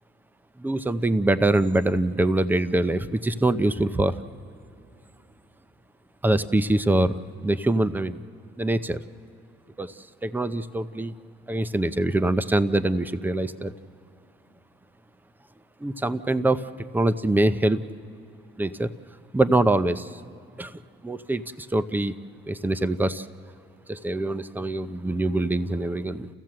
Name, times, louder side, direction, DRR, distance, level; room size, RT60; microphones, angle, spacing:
voice 1, 0.6-4.2 6.2-8.2 8.6-9.0 9.8-9.9 10.2-11.1 11.5-13.7 15.8-17.8 18.6-18.9 19.3-20.1 20.6-20.7 21.0-22.1 22.5-23.3 23.9-26.3, right 2 dB, 10° right, 13 dB, 0.6 m, -24 dB
30.0 x 15.0 x 7.6 m, 2.7 s
cardioid pair, 90°, 20 cm